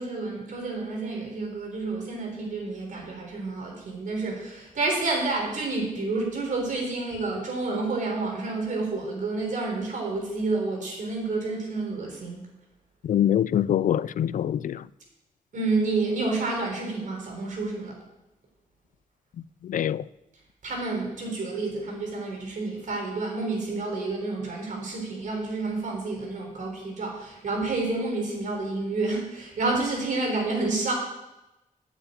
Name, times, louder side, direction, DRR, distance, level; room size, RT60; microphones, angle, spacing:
voice 1, 0.0-12.5 15.5-18.0 20.6-30.9, right 3 dB, 65° right, 4.0 m, -29 dB
voice 2, 13.0-14.8 19.7-20.0, left 10 dB, 65° left, 0.4 m, -24 dB
10.0 x 7.4 x 8.6 m
wide cardioid pair, 165°, 14 cm